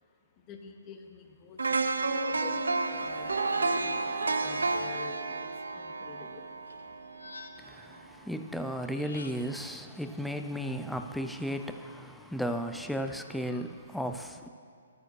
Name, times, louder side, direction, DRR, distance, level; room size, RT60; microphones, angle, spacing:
voice 1, 0.5-2.6 2.8-6.4 13.5-13.6, left 6 dB, 25° left, 4 dB, 0.9 m, -48 dB
sound 1, 1.6-7.6 8.0-8.1, right 3 dB, 85° right, 0.5 m, -31 dB
sound 2, 2.7-5.3 6.2-6.7 7.2-7.3 7.9-8.0, right 2 dB, 70° right, 2.0 m, -49 dB
sound 3, 6.7-7.9 8.8-9.7, left 3 dB, 85° left, 0.7 m, -49 dB
voice 2, 7.6-14.5, equal, ahead, 6 dB, 0.4 m, -35 dB
13.5 x 8.6 x 3.1 m, 2.2 s
hypercardioid pair, 140°, 0 cm